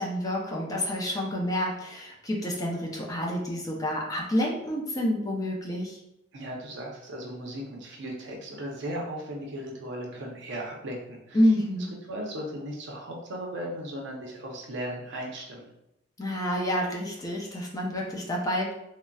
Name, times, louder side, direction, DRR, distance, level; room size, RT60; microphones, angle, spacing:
voice 1, 0.0-6.0 11.3-11.9 16.2-18.7, left 1 dB, 20° left, -2 dB, 0.5 m, -28 dB
voice 2, 6.3-11.4 12.1-15.7, equal, 65° right, -1 dB, 0.6 m, -37 dB
3.8 x 2.1 x 2.2 m, 0.83 s
head